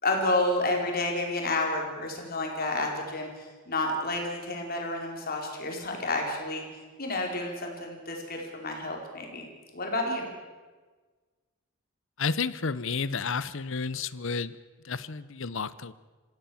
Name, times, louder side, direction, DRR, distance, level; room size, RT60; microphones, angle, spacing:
voice 1, 0.0-6.6 7.0-9.5 9.7-10.3, left 2 dB, 45° left, 1 dB, 4.6 m, -30 dB
voice 2, 12.2-14.6 14.8-15.9, left 5 dB, 65° left, 17 dB, 0.8 m, -31 dB
26.0 x 16.0 x 7.2 m, 1.4 s
head